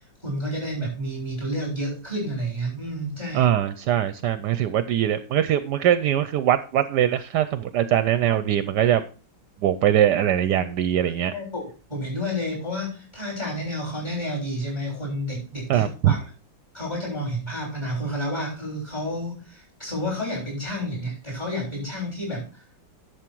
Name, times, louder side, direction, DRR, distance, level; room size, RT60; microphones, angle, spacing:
voice 1, 0.2-3.5 11.3-16.3 16.7-22.5, equal, 15° left, -2 dB, 7.1 m, -30 dB
voice 2, 3.3-9.0 9.6-11.3 15.7-16.2, right 11 dB, 70° right, 13 dB, 1.2 m, -22 dB
11.5 x 7.3 x 4.6 m, 0.36 s
omnidirectional pair, 1.9 m